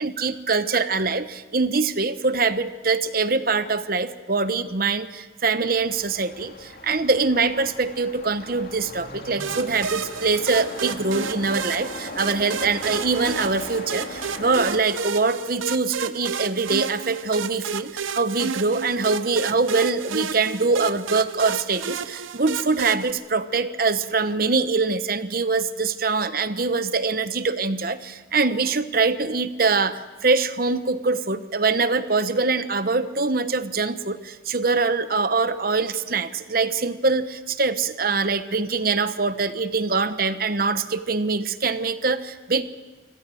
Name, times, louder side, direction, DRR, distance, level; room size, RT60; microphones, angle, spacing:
voice 1, 0.0-42.6, right 4 dB, 50° right, 11 dB, 1.0 m, -23 dB
sound 1, 5.8-14.8, left 2 dB, 50° left, 2.4 m, -38 dB
sound 2, 9.4-23.1, right 6 dB, 90° right, 0.7 m, -31 dB
25.0 x 17.0 x 7.7 m, 1.3 s
head